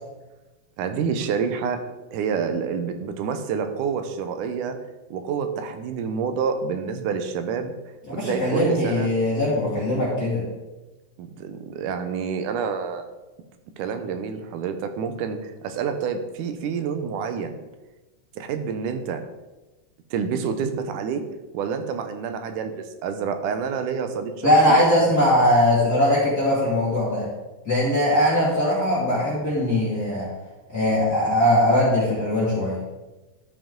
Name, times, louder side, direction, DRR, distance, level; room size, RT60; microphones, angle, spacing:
voice 1, 0.8-1.8 2.1-4.8 5.1-7.7 8.1-9.1 11.2-13.0 13.8-17.5 18.4-19.2 20.1-21.2 21.5-24.8, right 6 dB, 80° right, 8 dB, 2.2 m, -28 dB
voice 2, 8.1-10.4 24.4-27.3 27.6-30.3 30.7-32.8, left 1 dB, 35° left, -8 dB, 2.4 m, -20 dB
12.5 x 5.0 x 3.7 m, 1.1 s
omnidirectional pair, 3.6 m